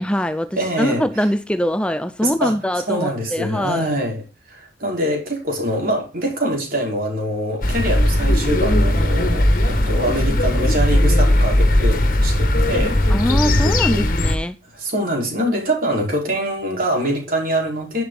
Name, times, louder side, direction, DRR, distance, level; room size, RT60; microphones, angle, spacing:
voice 1, 0.0-3.9 13.1-14.6, equal, 5° left, 0.5 m, -22 dB
voice 2, 0.5-1.3 2.2-4.2 4.5-13.0 13.9-14.1 14.7-18.0, right 1 dB, 50° right, 5.3 m, -24 dB
sound 1, 7.6-14.4, left 1 dB, 50° left, 1.8 m, -17 dB
11.0 x 9.3 x 4.0 m
head